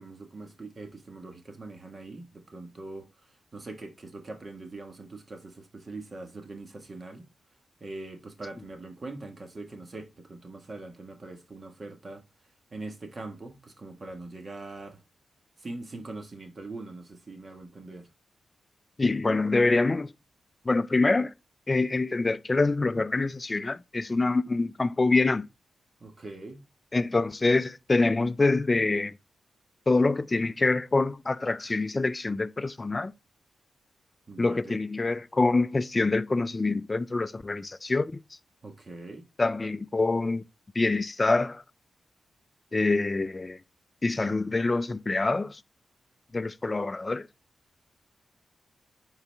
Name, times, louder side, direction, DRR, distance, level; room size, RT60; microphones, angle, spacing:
voice 1, 0.0-3.1 3.5-7.3 7.8-12.2 12.7-15.0 15.6-18.1 26.0-26.6 34.3-34.8 38.6-39.2, right 2 dB, 40° right, 1.5 m, -42 dB
voice 2, 19.0-20.1 20.7-21.3 21.7-25.5 26.9-29.1 29.9-33.1 34.4-38.2 39.4-40.4 40.7-41.6 42.7-43.6 44.0-45.6 46.3-47.3, left 3 dB, 30° left, 0.4 m, -25 dB
10.0 x 4.0 x 3.4 m
cardioid pair, 80°, 0 cm